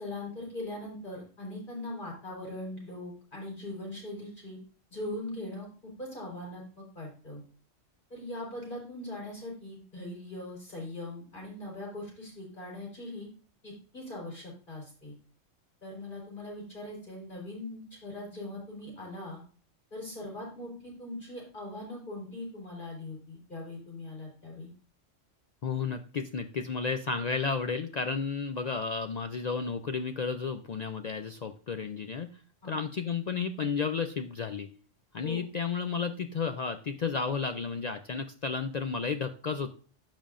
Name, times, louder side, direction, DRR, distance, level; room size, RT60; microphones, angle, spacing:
voice 1, 0.0-4.6 4.9-7.4 8.1-13.3 13.6-15.1 15.8-19.4 19.9-24.7 32.6-32.8 35.2-35.5, left 1 dB, 40° left, -3 dB, 4.2 m, -41 dB
voice 2, 25.6-34.7 35.1-39.7, left 5 dB, 70° left, 7 dB, 0.4 m, -32 dB
14.0 x 5.3 x 2.5 m, 0.41 s
omnidirectional pair, 1.3 m